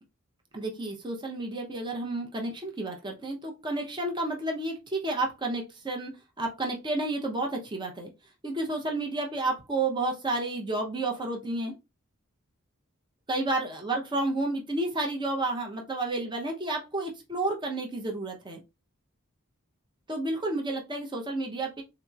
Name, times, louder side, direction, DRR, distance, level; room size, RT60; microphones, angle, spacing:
voice 1, 0.5-6.1 6.4-8.1 8.4-11.7 13.3-18.6 20.1-21.8, right 2 dB, 20° right, 1 dB, 0.7 m, -31 dB
3.8 x 2.9 x 2.3 m, 0.24 s
head